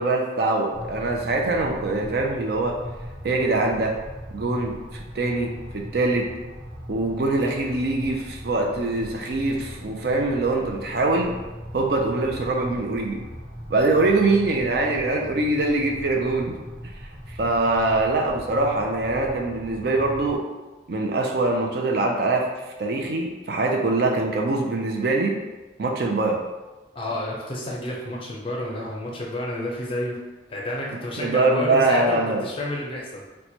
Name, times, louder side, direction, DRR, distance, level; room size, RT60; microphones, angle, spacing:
voice 1, 0.0-2.8 3.2-4.0 4.3-4.8 5.1-6.3 6.9-11.3 11.7-13.2 13.7-16.6 17.3-20.4 20.9-22.5 22.8-25.4 25.8-26.4 31.2-32.4, right 2 dB, 55° right, 1 dB, 0.4 m, -23 dB
sound 1, 0.7-20.4, equal, 25° right, 0.8 m, -39 dB
voice 2, 26.9-30.2 30.5-33.2, left 1 dB, 30° left, -2 dB, 0.5 m, -30 dB
2.9 x 2.2 x 4.1 m, 1.2 s
head